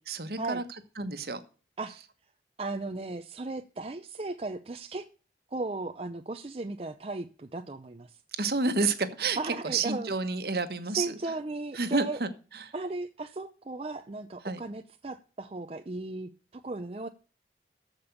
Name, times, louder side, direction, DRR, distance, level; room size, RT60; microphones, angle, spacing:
voice 1, 0.1-0.6 1.0-1.4 8.3-11.1 11.7-12.7 14.4-14.6, right 3 dB, 60° right, 1.3 m, -30 dB
voice 2, 2.6-5.1 5.5-8.2 9.4-10.1 10.9-12.2 12.7-17.1, right 2 dB, 35° right, 0.5 m, -36 dB
14.0 x 5.3 x 6.8 m
head